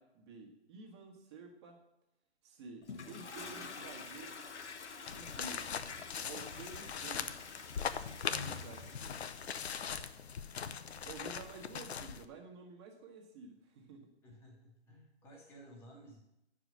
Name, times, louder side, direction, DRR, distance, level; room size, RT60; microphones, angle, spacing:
voice 1, 0.0-1.8 2.4-4.4 5.1-5.7 6.2-7.3 8.3-9.2 11.0-14.1, right 4 dB, 25° right, 1 dB, 1.4 m, -51 dB
Toilet flush, 2.8-9.7, left 4 dB, 85° left, 1.2 m, -48 dB
sound 1, 5.1-12.3, left 7 dB, 70° left, 0.7 m, -41 dB
voice 2, 14.2-16.2, right 1 dB, 5° left, -1 dB, 1.2 m, -56 dB
10.0 x 4.9 x 6.2 m, 0.86 s
hypercardioid pair, 160°, 34 cm